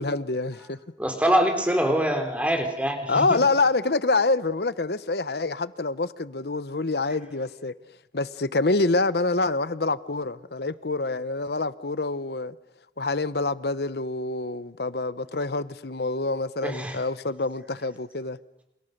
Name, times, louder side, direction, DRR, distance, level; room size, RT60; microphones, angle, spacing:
voice 1, 0.0-0.8 3.1-7.7 8.1-12.5 13.0-18.4, left 3 dB, 65° left, 1.0 m, -26 dB
voice 2, 1.0-3.4 16.6-17.0, equal, 10° right, 3.8 m, -24 dB
28.5 x 28.0 x 6.7 m
head